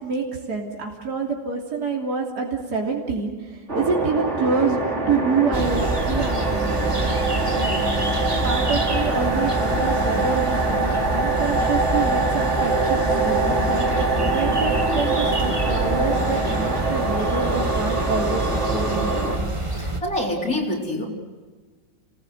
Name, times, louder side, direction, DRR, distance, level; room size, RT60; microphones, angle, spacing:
voice 1, 0.0-3.3 3.7-6.8 7.5-7.7 8.4-13.9 14.3-18.4 18.7-19.4, right 4 dB, 55° right, -1 dB, 3.6 m, -27 dB
sound 1, 3.7-19.4, right 2 dB, 35° right, 3.9 m, -24 dB
sound 2, 5.5-20.0, right 2 dB, 15° right, 1.9 m, -27 dB
voice 2, 19.8-21.1, left 1 dB, 50° left, -2 dB, 4.5 m, -26 dB
30.0 x 19.5 x 8.0 m, 1.4 s
omnidirectional pair, 2.0 m